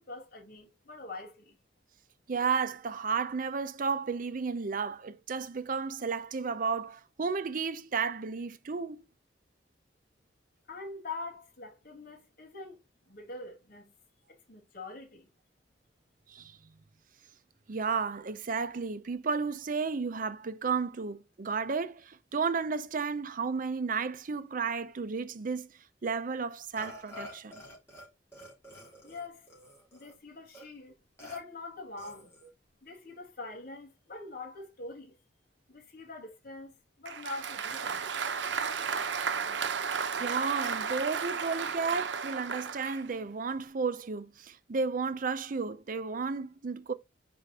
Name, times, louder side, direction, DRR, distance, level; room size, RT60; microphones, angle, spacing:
voice 1, 0.0-1.6 10.7-12.8 13.1-13.9 14.3-15.3 29.0-29.5 29.9-30.9 31.2-32.3 32.8-35.2 35.7-36.7 37.0-38.0, left 3 dB, 55° left, 2.5 m, -44 dB
voice 2, 2.3-9.0 16.3-16.6 17.7-25.7 26.0-27.6 40.2-46.9, right 5 dB, 50° right, 0.6 m, -33 dB
Burping eructation, 26.8-28.1 28.3-30.1 30.5-30.6 31.2-31.4 32.0-32.5, left 2 dB, 15° left, 3.5 m, -48 dB
Applause, 37.1-43.1, right 6 dB, 85° right, 0.7 m, -33 dB
5.1 x 5.0 x 4.1 m
head